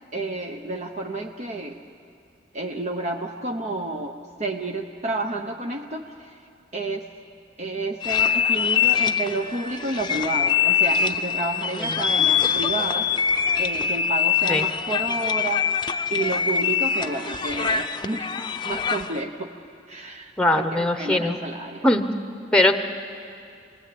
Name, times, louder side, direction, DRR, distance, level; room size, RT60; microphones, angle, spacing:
voice 1, 0.1-1.8 2.5-6.4 6.7-7.0 7.6-13.1 13.6-15.6 16.1-18.3 18.6-19.6 19.9-21.8, right 2 dB, 40° right, 2 dB, 1.0 m, -30 dB
sound 1, 8.0-19.2, left 7 dB, 25° left, 0.7 m, -23 dB
voice 2, 20.4-21.4 21.8-22.1 22.5-22.8, left 1 dB, 5° left, 7 dB, 1.0 m, -20 dB
28.0 x 20.0 x 8.8 m, 2.4 s
head